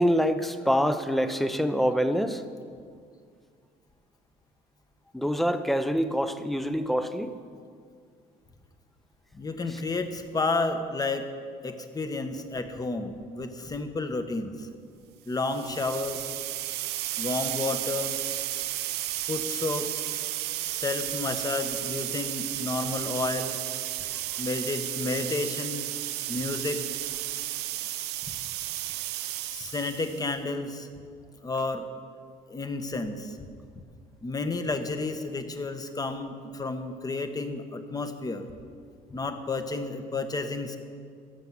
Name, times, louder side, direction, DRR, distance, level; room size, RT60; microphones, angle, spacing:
voice 1, 0.0-2.4 5.1-7.3 9.7-9.8, equal, ahead, 10 dB, 0.7 m, -25 dB
voice 2, 9.3-11.3 11.6-14.7 15.3-16.3 17.2-18.2 19.3-20.1 20.6-23.6 24.4-25.9 26.3-26.8 29.4-30.9 31.4-31.9 32.5-33.5 34.2-38.4 39.1-40.8, left 3 dB, 20° left, 7 dB, 1.1 m, -31 dB
sound 1, 15.4-30.3, right 14 dB, 80° right, 0.6 m, -33 dB
15.5 x 6.9 x 7.6 m, 2.2 s
cardioid pair, 110°, 17 cm